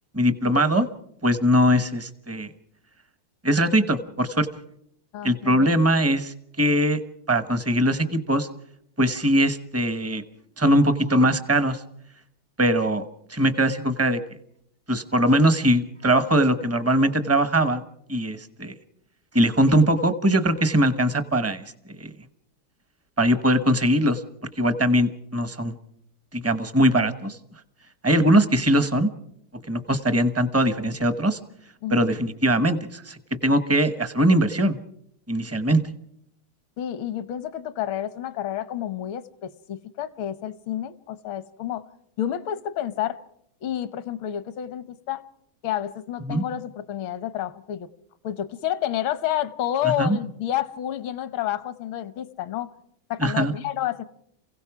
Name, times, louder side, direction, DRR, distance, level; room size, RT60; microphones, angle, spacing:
voice 1, 0.1-0.9 1.2-2.5 3.4-4.5 5.2-7.0 7.3-8.5 9.0-10.2 10.6-11.8 12.6-13.0 13.3-14.2 14.9-17.8 18.1-18.7 19.3-21.6 21.9-22.1 23.2-24.2 24.6-25.8 26.3-27.4 28.0-29.1 29.7-31.4 31.9-34.8 35.3-35.8 46.3-46.4 49.8-50.2 53.2-53.5, equal, 15° right, 0.4 m, -21 dB
voice 2, 5.1-5.7 31.8-32.1 36.8-41.9 42.2-43.2 43.6-45.2 45.6-47.9 48.2-52.7 53.1-54.0, left 11 dB, 80° left, 1.8 m, -29 dB
28.0 x 16.5 x 6.0 m
omnidirectional pair, 2.2 m